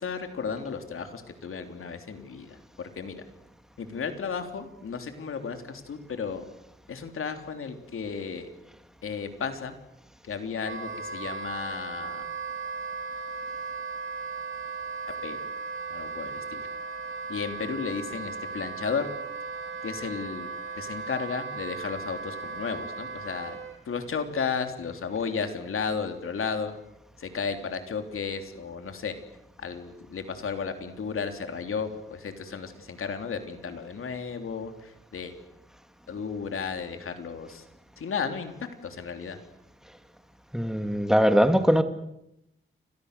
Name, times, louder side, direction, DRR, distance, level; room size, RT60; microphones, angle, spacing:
voice 1, 0.0-3.2 3.8-6.4 6.9-8.5 9.0-9.7 10.3-12.2 15.2-15.4 15.9-16.6 17.3-19.1 19.8-20.5 20.8-23.6 23.9-26.7 27.2-29.1 29.6-35.3 36.1-37.6 38.0-38.5 38.8-39.4, left 5 dB, 85° left, 3.4 m, -33 dB
Wind instrument woodwind instrument, 10.6-23.8, right 4 dB, 65° right, 4.2 m, -37 dB
voice 2, 40.5-41.8, equal, ahead, 2.1 m, -21 dB
29.5 x 26.0 x 6.8 m
wide cardioid pair, 130°, 21 cm